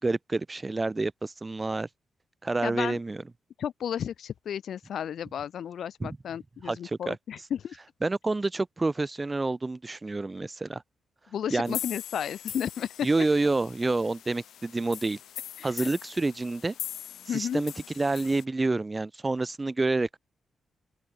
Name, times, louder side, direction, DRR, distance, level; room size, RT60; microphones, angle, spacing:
voice 1, 0.0-1.9 2.4-3.2 6.0-6.2 6.6-7.2 8.0-10.8 11.5-11.8 13.0-15.2 15.6-16.7 17.3-20.2, right 3 dB, 15° right, 4.3 m, -28 dB
voice 2, 2.6-3.0 3.6-7.8 11.3-13.1 15.6-15.9 17.3-17.6, left 9 dB, 60° left, 7.0 m, -33 dB
sound 1, 11.7-18.4, left 10 dB, 80° left, 5.5 m, -41 dB
open air
wide cardioid pair, 165°, 0 cm